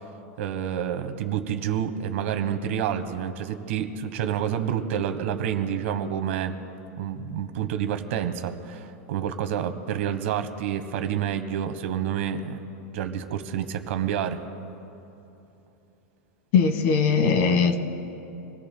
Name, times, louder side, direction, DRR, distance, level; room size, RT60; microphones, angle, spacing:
voice 1, 0.4-6.6 7.0-12.6 12.9-14.4, right 9 dB, 60° right, 8 dB, 1.3 m, -28 dB
voice 2, 16.5-17.8, left 5 dB, 45° left, 7 dB, 1.5 m, -20 dB
27.5 x 18.5 x 2.3 m, 2.9 s
supercardioid pair, 170°, 8 cm